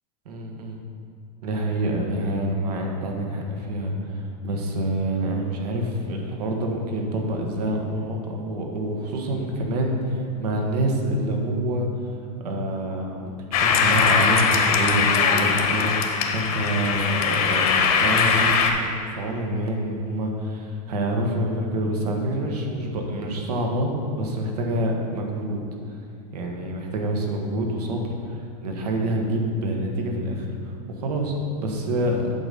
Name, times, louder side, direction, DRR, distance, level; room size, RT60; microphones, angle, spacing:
voice 1, 0.2-0.8 1.4-12.1 12.4-13.3 13.6-25.6 25.9-26.0 26.3-32.3, right 1 dB, 90° right, 1 dB, 1.5 m, -27 dB
sound 1, 13.5-18.7, left 5 dB, 70° left, 1.0 m, -21 dB
8.8 x 4.0 x 6.7 m, 2.4 s
supercardioid pair, 165°, 19 cm